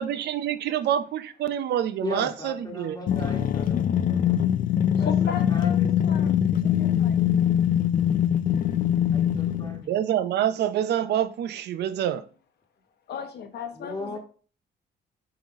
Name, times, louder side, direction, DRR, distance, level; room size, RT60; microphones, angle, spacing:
voice 1, 0.0-3.3 9.9-12.2, right 10 dB, 80° right, 0.6 m, -27 dB
voice 2, 2.0-4.4 5.0-5.9 9.1-9.9 13.7-14.2, left 1 dB, 20° left, 1.4 m, -37 dB
sound 1, 3.1-9.8, left 10 dB, 55° left, 0.4 m, -23 dB
voice 3, 5.0-5.8 6.0-7.4 13.1-14.2, left 7 dB, 75° left, 1.1 m, -36 dB
4.9 x 3.9 x 5.2 m
cardioid pair, 120°, 17 cm